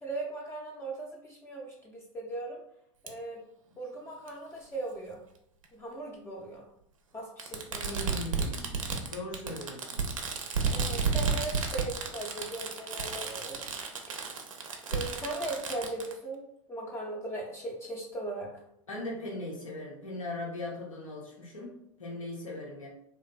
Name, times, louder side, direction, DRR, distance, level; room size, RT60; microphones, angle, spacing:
voice 1, 0.0-2.6 3.0-3.4 3.8-5.2 5.7-6.6 7.1-8.0 10.7-14.0 14.9-16.4 16.7-18.5, right 2 dB, 15° left, -3 dB, 0.5 m, -38 dB
Fireworks, 3.1-3.2 4.3-4.4 5.6-5.7 7.4-16.1, right 5 dB, 85° right, 0.4 m, -32 dB
voice 2, 7.8-10.0 18.9-22.9, left 2 dB, 90° left, -3 dB, 0.7 m, -39 dB
2.5 x 2.4 x 2.2 m, 0.75 s
hypercardioid pair, 85°, 17 cm